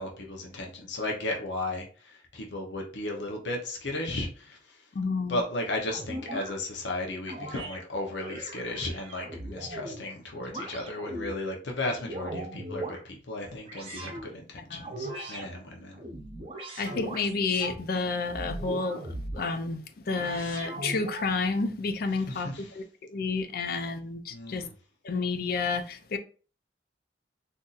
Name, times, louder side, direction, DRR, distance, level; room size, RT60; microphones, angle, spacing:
voice 1, 0.0-4.9 5.3-16.0 22.1-22.8 24.3-24.7, left 2 dB, 85° left, 0.8 m, -35 dB
voice 2, 4.9-5.4 14.7-14.9 16.8-22.5 22.7-22.8 23.1-24.7 25.0-26.2, left 4 dB, 55° left, 0.4 m, -30 dB
sound 1, 5.9-6.5 7.3-7.8 8.2-10.0 10.4-11.3 11.8-13.0 13.7-14.2 14.8-15.5 15.9-17.8 18.3-19.5 20.1-21.3, right 1 dB, 35° right, 0.7 m, -38 dB
3.9 x 2.6 x 2.4 m
head